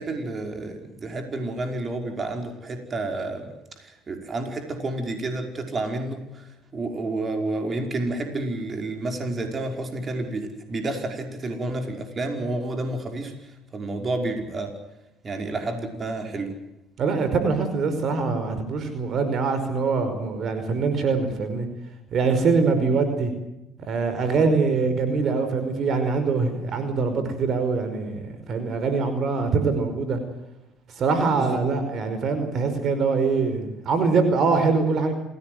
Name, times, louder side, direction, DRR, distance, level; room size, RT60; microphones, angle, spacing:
voice 1, 0.0-3.5 3.8-6.4 6.7-13.3 13.7-14.7 15.2-16.5 24.3-24.5 31.4-31.6, right 2 dB, 35° right, 4 dB, 5.2 m, -30 dB
voice 2, 17.0-21.7 22.1-23.3 23.9-28.2 28.5-30.2 31.0-35.1, right 4 dB, 55° right, 9 dB, 5.2 m, -23 dB
28.0 x 17.5 x 7.9 m, 0.91 s
supercardioid pair, 80°, 0 cm